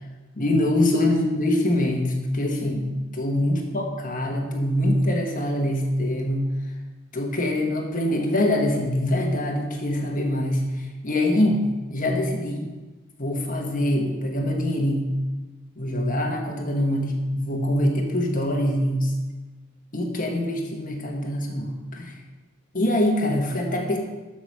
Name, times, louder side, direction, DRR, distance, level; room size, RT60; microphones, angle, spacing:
voice 1, 0.3-6.4 7.1-12.7 13.2-15.1 15.8-19.1 19.9-22.1 22.7-24.0, left 1 dB, 40° left, 1 dB, 1.5 m, -24 dB
8.0 x 6.2 x 6.6 m, 1.2 s
head